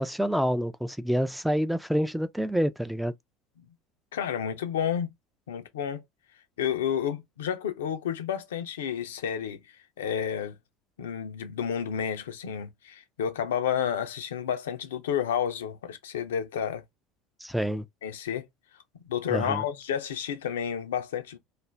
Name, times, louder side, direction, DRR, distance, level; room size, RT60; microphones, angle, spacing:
voice 1, 0.0-3.1 17.4-17.8 19.3-19.6, equal, ahead, 0.4 m, -27 dB
voice 2, 4.1-5.1 5.5-6.0 6.6-9.6 10.0-10.5 11.0-16.8 18.0-18.4 19.0-21.4, left 8 dB, 80° left, 0.5 m, -30 dB
2.4 x 2.1 x 3.2 m
hypercardioid pair, 80°, 0 cm